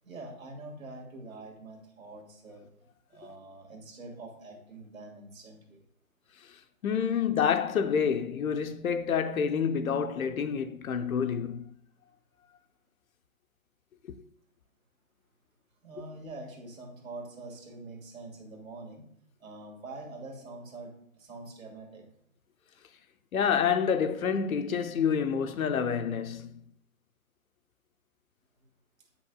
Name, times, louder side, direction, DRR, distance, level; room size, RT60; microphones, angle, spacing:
voice 1, 0.0-5.8 15.8-19.1 19.4-22.1 28.6-28.7, right 2 dB, 70° right, 2.1 m, -45 dB
voice 2, 6.8-11.6 23.3-26.6, left 7 dB, 80° left, 0.7 m, -28 dB
8.1 x 5.9 x 2.3 m
hypercardioid pair, 165°, 42 cm